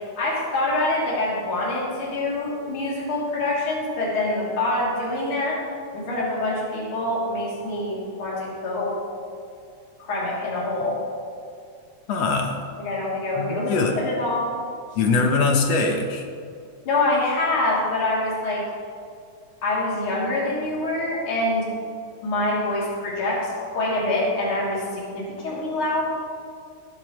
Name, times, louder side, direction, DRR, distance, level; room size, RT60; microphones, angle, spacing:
voice 1, 0.2-5.5 5.9-9.0 10.0-10.9 12.8-14.5 16.9-18.6 19.6-21.7 22.2-26.0, left 2 dB, 40° left, -6 dB, 3.7 m, -25 dB
voice 2, 12.1-12.7 13.4-14.0 15.0-16.2, left 4 dB, 65° left, 2 dB, 2.0 m, -22 dB
19.0 x 9.9 x 3.1 m, 2.3 s
omnidirectional pair, 3.6 m